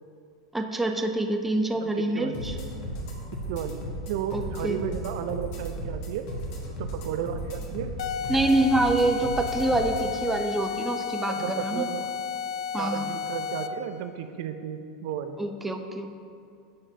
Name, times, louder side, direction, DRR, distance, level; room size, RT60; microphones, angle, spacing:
voice 1, 0.5-2.6 4.3-4.8 8.3-11.9 12.7-13.1 15.4-16.1, right 2 dB, 5° right, 4 dB, 0.5 m, -26 dB
voice 2, 1.8-2.3 3.5-3.8 4.1-6.3 6.8-8.0 11.3-12.1 12.8-15.4, right 9 dB, 65° right, 8 dB, 0.4 m, -33 dB
sound 1, 2.3-10.1, right 1 dB, 55° left, 1.3 m, -35 dB
sound 2, 8.0-13.9, left 7 dB, 75° left, 0.3 m, -33 dB
9.7 x 6.0 x 2.7 m, 2.4 s
hypercardioid pair, 100°, 3 cm